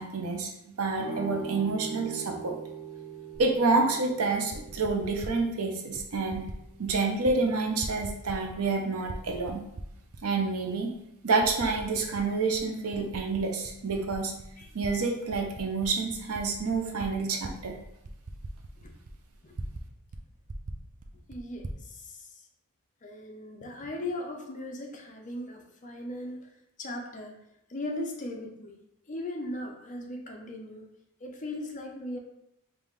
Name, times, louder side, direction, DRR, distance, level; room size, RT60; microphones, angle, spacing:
voice 1, 0.0-2.6 3.4-6.4 6.8-9.6 10.2-10.9 11.2-14.3 14.7-17.8, right 3 dB, 70° right, 3 dB, 0.6 m, -28 dB
sound 1, 1.0-6.7, right 5 dB, 20° right, 1.3 m, -41 dB
Typing, 3.3-3.5 4.3-5.4 6.0-6.6 6.9-7.4 7.6-8.7 9.0-10.2 10.8-10.9 11.4-12.3 12.5-14.9 15.3-19.9 20.1-20.2 20.5-21.8, right 1 dB, 35° right, 0.4 m, -41 dB
voice 2, 21.3-22.4 23.0-26.5 26.8-27.4 27.7-28.8 29.1-30.9 31.2-32.2, left 1 dB, 35° left, 2 dB, 0.5 m, -38 dB
5.3 x 2.4 x 3.1 m, 0.82 s
head